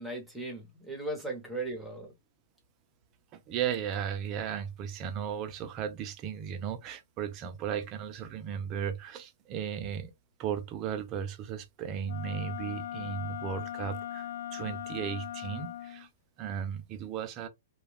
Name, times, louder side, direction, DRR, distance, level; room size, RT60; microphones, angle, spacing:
voice 1, 0.0-2.1, right 2 dB, 5° right, 0.8 m, -37 dB
voice 2, 3.3-10.1 10.4-16.1 16.4-17.5, right 8 dB, 30° right, 0.4 m, -35 dB
Wind instrument woodwind instrument, 12.0-16.1, left 12 dB, 65° left, 0.4 m, -39 dB
2.2 x 2.2 x 3.2 m
hypercardioid pair, 155°, 0 cm